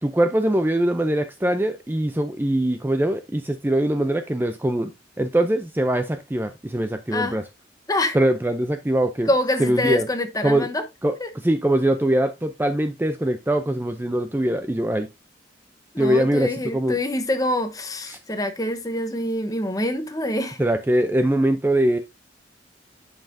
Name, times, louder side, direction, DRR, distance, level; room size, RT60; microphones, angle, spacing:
voice 1, 0.0-4.9 5.2-7.4 8.1-9.3 9.6-10.1 10.4-10.7 11.0-11.2 11.4-15.1 16.0-17.0 18.1-18.2 20.6-22.0, right 1 dB, 10° right, 0.4 m, -22 dB
voice 2, 9.3-10.8 11.2-11.3 15.9-20.6, left 1 dB, 20° left, 1.0 m, -25 dB
10.5 x 5.6 x 2.6 m
head